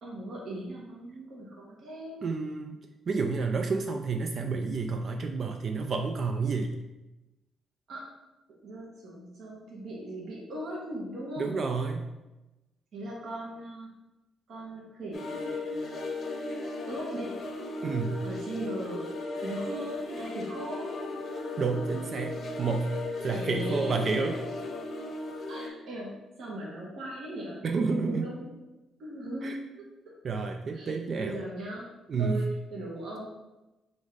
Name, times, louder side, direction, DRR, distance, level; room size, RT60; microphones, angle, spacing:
voice 1, 0.0-2.2 7.9-8.1 8.6-11.6 12.9-13.9 14.5-15.9 16.9-17.4 18.2-19.1 19.4-21.0 23.3-24.3 25.5-28.5 29.0-30.1 30.7-31.9 32.2-33.3, right 1 dB, 65° right, -5 dB, 1.2 m, -39 dB
voice 2, 2.2-2.8 3.1-6.7 11.4-12.1 17.8-18.2 21.6-23.0 23.2-24.4 27.6-28.3 29.4-29.6 30.2-31.4 32.1-32.4, right 4 dB, 50° right, 4 dB, 0.3 m, -30 dB
sound 1, 15.1-25.7, left 2 dB, 50° left, 0.7 m, -36 dB
3.9 x 2.6 x 4.7 m, 1.0 s
cardioid pair, 90°, 0 cm